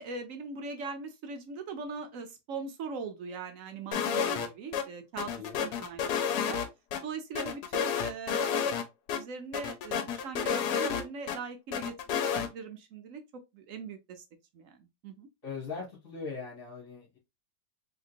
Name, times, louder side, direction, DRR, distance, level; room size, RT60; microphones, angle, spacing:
voice 1, 0.0-5.3 5.6-6.6 7.0-8.5 9.1-13.2 13.5-14.2 14.5-15.3, right 4 dB, 60° right, 0.9 m, -41 dB
sound 1, 3.9-4.5 4.7-4.8 5.2-7.0 7.4-8.8 9.1-9.2 9.5-11.4 11.7-12.5, left 7 dB, 75° left, 1.2 m, -30 dB
voice 2, 5.3-5.6 15.4-17.2, left 5 dB, 50° left, 1.8 m, -40 dB
3.7 x 3.0 x 2.5 m
omnidirectional pair, 1.8 m